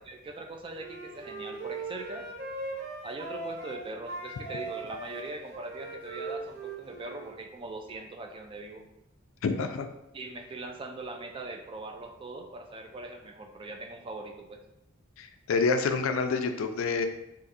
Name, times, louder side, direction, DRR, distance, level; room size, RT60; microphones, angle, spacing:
voice 1, 0.0-2.3 3.0-8.8 10.1-14.6, right 2 dB, 25° right, 4 dB, 0.3 m, -41 dB
Wind instrument woodwind instrument, 0.7-3.8 4.0-7.4, right 3 dB, 50° right, 0.8 m, -39 dB
voice 2, 9.4-9.9 15.2-17.1, left 4 dB, 70° left, 7 dB, 0.3 m, -27 dB
2.5 x 2.5 x 4.0 m, 0.86 s
head